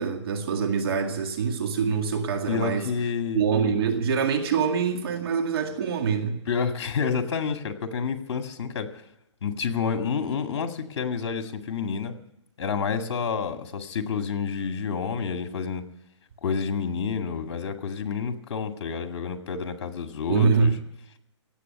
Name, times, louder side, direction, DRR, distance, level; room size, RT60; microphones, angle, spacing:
voice 1, 0.0-2.9 3.3-6.4 20.3-20.8, right 6 dB, 55° right, 5 dB, 2.0 m, -25 dB
voice 2, 2.5-3.4 6.5-8.9 9.4-12.1 12.6-15.8 16.4-20.7, left 6 dB, 60° left, 6 dB, 2.0 m, -29 dB
17.0 x 7.6 x 9.6 m, 0.83 s
hypercardioid pair, 150°, 15 cm